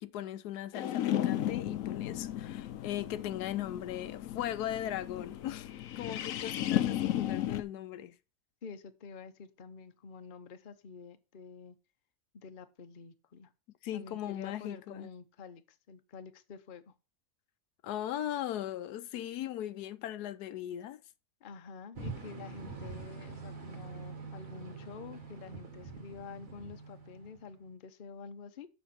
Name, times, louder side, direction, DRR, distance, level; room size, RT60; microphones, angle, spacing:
voice 1, 0.0-5.7 6.0-8.1 13.8-15.1 17.8-21.0, left 12 dB, 85° left, 1.2 m, -38 dB
sound 1, 0.7-7.6, left 12 dB, 65° left, 1.0 m, -34 dB
voice 2, 8.6-11.8 12.3-13.5 13.9-16.9 21.4-28.7, left 5 dB, 45° left, 0.8 m, -48 dB
sound 2, 22.0-27.6, right 4 dB, 60° right, 2.1 m, -45 dB
7.1 x 6.1 x 5.7 m
omnidirectional pair, 1.7 m